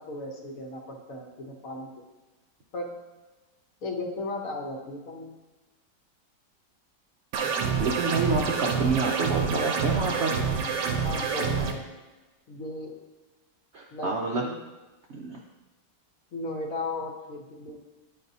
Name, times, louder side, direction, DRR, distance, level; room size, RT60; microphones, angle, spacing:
voice 1, 0.0-2.0 2.7-2.9 3.8-5.3 11.0-11.8 12.5-12.9 13.9-14.5 16.3-17.8, left 2 dB, 60° left, 1 dB, 1.1 m, -36 dB
sound 1, 7.3-11.7, right 6 dB, 90° right, 1.4 m, -27 dB
voice 2, 7.7-10.3 13.7-14.4 15.1-15.4, right 4 dB, 65° right, -1 dB, 0.6 m, -28 dB
9.7 x 4.3 x 2.7 m, 1.2 s
omnidirectional pair, 1.9 m